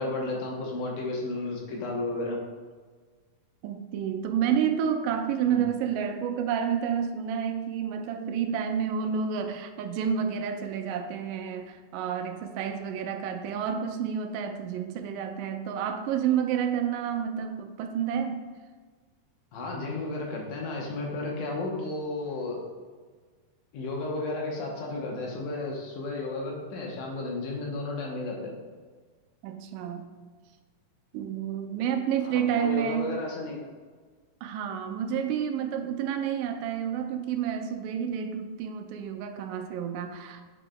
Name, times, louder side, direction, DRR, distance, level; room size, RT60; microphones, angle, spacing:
voice 1, 0.0-2.4 5.5-5.6 19.5-22.7 23.7-28.5 32.2-33.6, left 2 dB, 75° left, -1 dB, 2.4 m, -33 dB
voice 2, 3.6-18.5 29.4-30.1 31.1-33.2 34.4-40.4, right 8 dB, 85° right, 6 dB, 2.2 m, -29 dB
8.8 x 5.0 x 2.2 m, 1.5 s
omnidirectional pair, 3.8 m